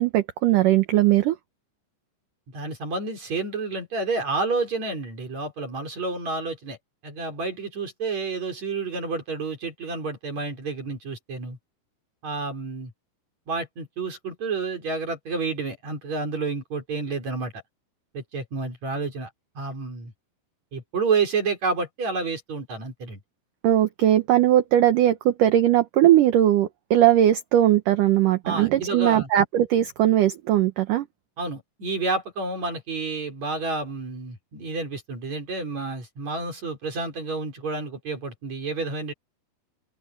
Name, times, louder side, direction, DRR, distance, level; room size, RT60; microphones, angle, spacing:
voice 1, 0.0-1.4 23.6-31.1, right 12 dB, 70° right, 2.3 m, -19 dB
voice 2, 2.5-6.8 7.0-11.6 12.2-12.9 13.5-17.5 18.1-19.3 19.6-20.1 20.7-23.2 28.4-29.3 31.4-39.1, right 4 dB, 45° right, 5.8 m, -29 dB
open air
omnidirectional pair, 4.6 m